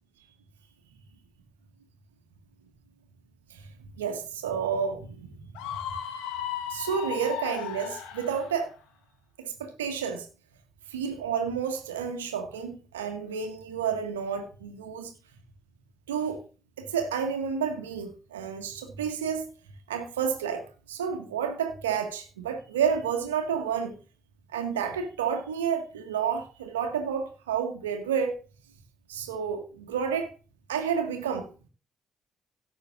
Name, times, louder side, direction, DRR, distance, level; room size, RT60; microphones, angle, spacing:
voice 1, 4.0-5.3 6.7-8.7 9.4-10.3 10.9-15.1 16.1-16.4 16.8-19.5 19.9-24.0 24.5-28.4 29.1-30.3 30.7-31.5, right 7 dB, 90° right, 1.7 m, -30 dB
Screaming, 5.6-8.5, left 10 dB, 80° left, 2.1 m, -35 dB
17.5 x 8.8 x 2.5 m
hypercardioid pair, 40°, 0 cm